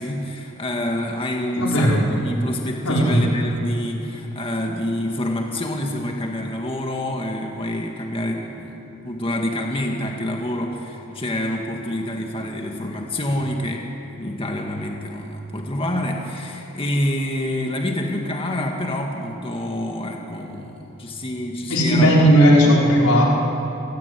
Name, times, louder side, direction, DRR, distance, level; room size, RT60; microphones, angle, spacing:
voice 1, 0.0-8.8 9.0-22.3 22.6-22.8 23.0-23.2, left 1 dB, 25° left, 1 dB, 1.9 m, -27 dB
voice 2, 1.6-2.0 2.8-3.3 21.7-23.2, equal, 90° left, -3 dB, 5.5 m, -16 dB
28.5 x 18.5 x 8.5 m, 3.0 s
head